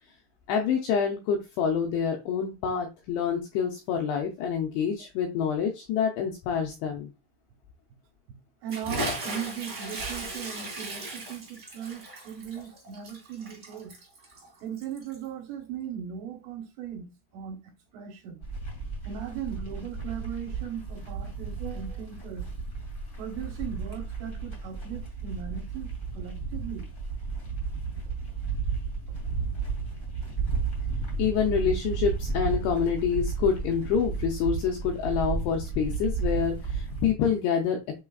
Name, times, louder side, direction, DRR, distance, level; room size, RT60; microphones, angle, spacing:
voice 1, 0.5-7.1 31.2-37.8, left 7 dB, 80° left, 2.4 m, -27 dB
voice 2, 8.6-13.9 14.6-17.1 17.3-17.6 17.9-18.4 19.0-22.5 23.2-26.9, right 8 dB, 75° right, 3.1 m, -38 dB
Bathtub (filling or washing) / Splash splatter, 8.7-15.3, right 2 dB, 25° right, 1.9 m, -37 dB
sound 1, 18.4-37.1, right 4 dB, 30° left, 1.0 m, -33 dB
7.1 x 3.2 x 2.3 m
omnidirectional pair, 5.4 m